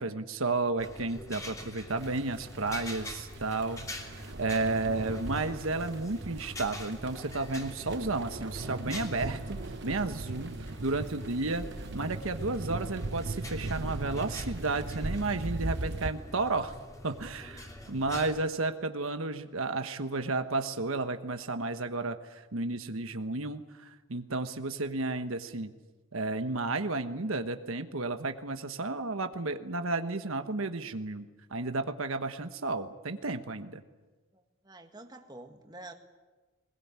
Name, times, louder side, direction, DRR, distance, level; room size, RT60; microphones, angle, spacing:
voice 1, 0.0-10.5 10.8-16.7 17.0-25.7 26.1-33.8, right 3 dB, 75° right, 8 dB, 1.2 m, -32 dB
sound 1, 0.8-18.4, left 1 dB, 15° left, 2.9 m, -45 dB
sound 2, 2.0-16.1, right 2 dB, 55° right, 1.0 m, -39 dB
voice 2, 34.3-35.9, right 2 dB, 20° right, 5 dB, 1.8 m, -48 dB
21.0 x 21.0 x 9.7 m, 1.2 s
head